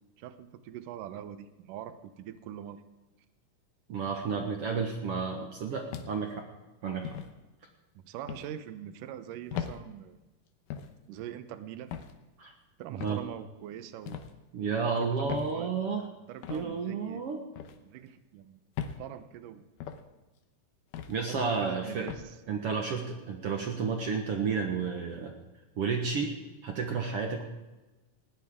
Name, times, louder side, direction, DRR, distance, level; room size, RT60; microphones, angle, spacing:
voice 1, 0.2-2.8 8.0-10.2 11.1-11.9 12.8-14.2 14.9-15.7 16.1-17.2 17.8-18.6 19.0-19.6 21.3-22.4, right 10 dB, 75° right, 11 dB, 2.4 m, -43 dB
voice 2, 3.9-6.5 6.8-7.2 12.4-12.5 12.9-13.2 14.5-16.0 16.5-17.4 21.1-22.1 22.5-25.3 25.8-26.3 26.6-27.5, right 5 dB, 55° right, 2 dB, 1.8 m, -31 dB
sound 1, 5.9-6.4 7.0-7.3 8.3-8.5 9.5-9.8 10.7-10.9 11.9-12.2 13.0-13.3 14.1-14.3 15.3-15.5 16.4-16.6 17.6-17.8 18.8-19.0 19.8-20.0 20.9-21.2 22.1-22.3, left 9 dB, 75° left, 2.5 m, -38 dB
19.5 x 16.5 x 3.7 m, 1.1 s
omnidirectional pair, 3.9 m